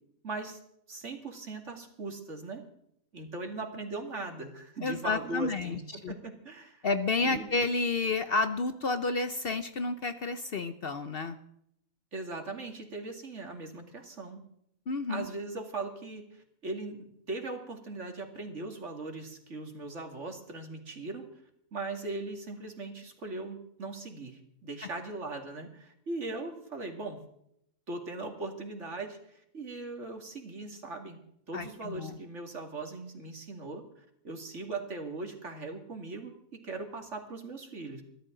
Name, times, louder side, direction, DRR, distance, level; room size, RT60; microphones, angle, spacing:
voice 1, 0.2-0.6 0.9-2.6 3.1-6.9 7.2-7.5 12.1-14.4 15.1-21.2 21.7-27.2 27.9-31.2 31.5-36.3 36.6-38.0, right 3 dB, 60° right, 3 dB, 2.7 m, -39 dB
voice 2, 4.8-6.2 6.8-11.4 14.9-15.3 31.5-32.2, left 3 dB, 50° left, 10 dB, 0.9 m, -30 dB
23.0 x 14.0 x 3.9 m, 0.73 s
omnidirectional pair, 1.4 m